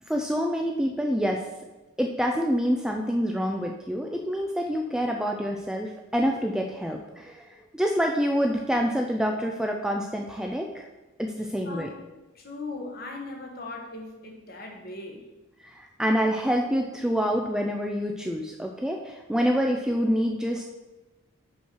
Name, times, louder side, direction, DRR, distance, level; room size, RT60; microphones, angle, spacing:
voice 1, 0.1-1.4 2.0-10.9 11.2-11.9 15.6-20.6, equal, 5° right, 1 dB, 0.3 m, -27 dB
voice 2, 12.3-15.2, left 2 dB, 45° left, 1 dB, 1.2 m, -38 dB
6.3 x 5.5 x 4.5 m, 1.1 s
head